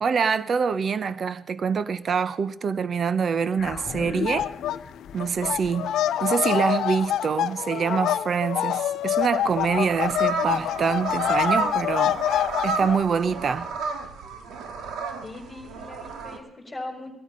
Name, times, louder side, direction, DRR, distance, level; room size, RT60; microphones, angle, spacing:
voice 1, 0.0-4.5 5.1-13.7, right 6 dB, 50° right, 0.9 m, -25 dB
sound 1, 3.6-8.2, left 7 dB, 60° left, 0.9 m, -39 dB
sound 2, 4.3-4.8 5.1-13.0, left 11 dB, 80° left, 0.6 m, -26 dB
sound 3, 9.4-16.4, right 5 dB, 85° right, 1.9 m, -32 dB
voice 2, 15.2-17.1, left 2 dB, 10° left, 4.5 m, -39 dB
20.0 x 13.0 x 5.6 m
cardioid pair, 90°, 0 cm